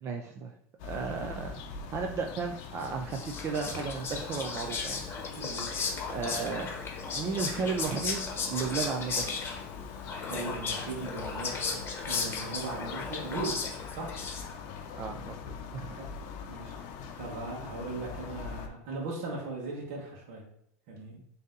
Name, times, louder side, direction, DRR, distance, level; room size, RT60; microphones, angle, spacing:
voice 1, 0.0-0.5 0.8-5.0 6.1-6.7 7.1-9.3 15.0-16.1, right 5 dB, 35° right, 3 dB, 0.4 m, -34 dB
sound 1, 0.8-18.7, left 6 dB, 65° left, 0.6 m, -43 dB
Whispering, 2.8-14.8, left 4 dB, 30° left, 0.9 m, -36 dB
voice 2, 5.3-5.7 10.0-13.5 13.9-14.1 16.0-16.1 16.5-16.7 17.2-20.4 20.9-21.2, right 3 dB, 70° right, -2 dB, 1.2 m, -38 dB
3.9 x 2.7 x 3.8 m, 0.71 s
supercardioid pair, 115°, 8 cm